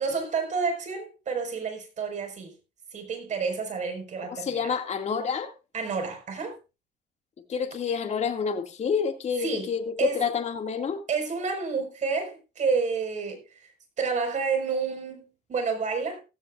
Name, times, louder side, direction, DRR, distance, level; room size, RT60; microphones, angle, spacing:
voice 1, 0.0-2.5 2.9-4.7 5.7-6.6 9.4-9.7 10.0-10.2 11.1-13.6 14.0-16.2, right 5 dB, 45° right, 5.4 m, -29 dB
voice 2, 4.3-5.5 7.5-11.0, left 6 dB, 40° left, 2.4 m, -28 dB
16.0 x 15.5 x 2.6 m
cardioid pair, 110°, 17 cm